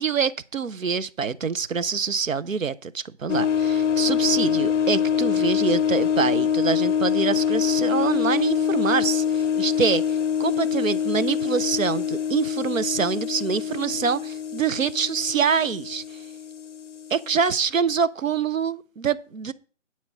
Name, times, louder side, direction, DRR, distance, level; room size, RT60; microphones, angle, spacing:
voice 1, 0.0-10.0 10.4-16.0 17.1-19.5, right 6 dB, 85° right, 0.8 m, -25 dB
sound 1, 3.3-17.5, left 8 dB, 65° left, 0.5 m, -25 dB
9.6 x 4.4 x 7.1 m
figure-of-eight pair, 180°, 39 cm